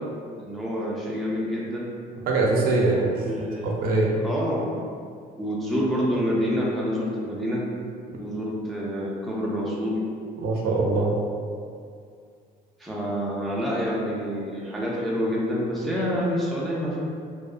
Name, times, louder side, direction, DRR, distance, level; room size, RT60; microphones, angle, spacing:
voice 1, 0.4-1.9 3.2-3.7 4.2-4.7 5.4-7.6 8.2-10.0 12.8-17.0, equal, ahead, -5 dB, 0.4 m, -27 dB
voice 2, 2.3-3.2 3.6-4.2 10.4-11.1, right 3 dB, 60° right, -2 dB, 0.5 m, -22 dB
2.7 x 2.0 x 2.4 m, 2.3 s
cardioid pair, 110°, 17 cm